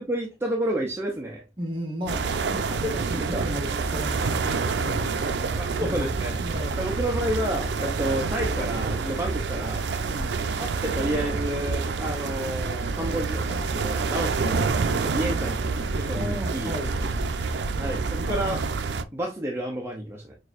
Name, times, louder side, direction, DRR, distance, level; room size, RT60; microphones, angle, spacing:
voice 1, 0.0-1.4 2.8-3.4 5.6-6.4 6.8-9.9 10.5-14.7 15.0-15.7 16.0-16.7 17.8-18.6 19.1-20.3, right 1 dB, 15° right, 0.6 m, -30 dB
voice 2, 1.6-5.5 5.8-6.1 6.4-7.0 10.0-10.3 13.0-13.2 15.0-15.3 16.1-17.0, equal, 30° right, 1.3 m, -36 dB
sound 1, 2.0-18.5, right 1 dB, 80° left, 1.3 m, -41 dB
sound 2, 2.1-19.0, right 4 dB, 75° right, 0.4 m, -28 dB
6.2 x 2.6 x 2.4 m
head